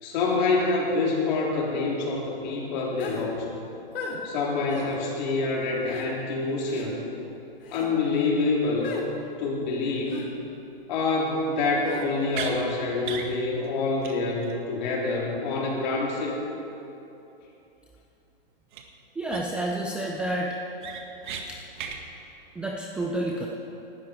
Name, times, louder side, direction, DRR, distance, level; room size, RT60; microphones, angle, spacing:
voice 1, 0.0-3.5 4.2-7.1 7.7-8.9 9.4-10.3 10.9-16.4, left 3 dB, 50° left, -3 dB, 3.8 m, -26 dB
sound 1, 3.0-3.3 3.9-4.2 4.7-4.9 5.8-6.1 6.7-6.9 7.6-7.9 8.8-9.1 10.1-10.3 11.8-12.1, left 5 dB, 65° left, 2.9 m, -36 dB
sound 2, 12.3-12.6 13.0-13.3 13.6-13.7 14.0-14.2 14.4-14.5 18.7-18.8 19.3-19.7 20.1-20.2 20.5-21.4 21.8-22.0, right 7 dB, 55° right, 1.7 m, -35 dB
voice 2, 19.2-20.5 21.5-21.6 22.6-23.5, right 1 dB, 5° right, -1 dB, 0.4 m, -29 dB
18.5 x 12.5 x 4.6 m, 3.0 s
hypercardioid pair, 150°, 29 cm